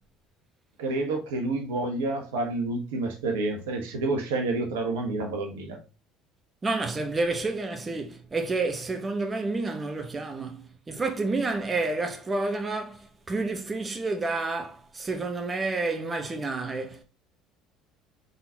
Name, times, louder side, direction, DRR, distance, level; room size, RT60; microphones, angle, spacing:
voice 1, 0.8-5.8, right 2 dB, 75° right, 1.0 m, -29 dB
voice 2, 6.6-17.0, right 3 dB, 25° right, 1.0 m, -29 dB
3.9 x 3.9 x 2.7 m
hypercardioid pair, 65°, 0 cm